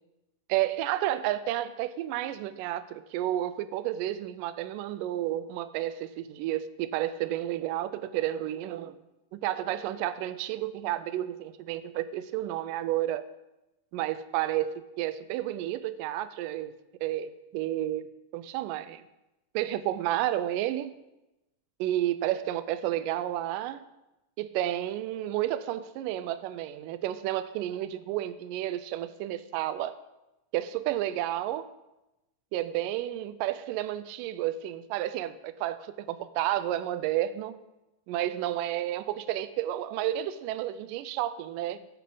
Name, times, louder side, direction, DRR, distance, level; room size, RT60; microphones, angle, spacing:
voice 1, 0.5-9.0 9.3-13.2 13.9-14.7 15.0-16.7 17.0-18.1 18.3-19.0 19.5-20.9 21.8-23.8 24.4-29.9 30.5-31.7 32.5-37.6 38.1-41.8, right 13 dB, 85° right, 13 dB, 2.2 m, -31 dB
17.5 x 8.5 x 3.9 m, 0.95 s
omnidirectional pair, 3.8 m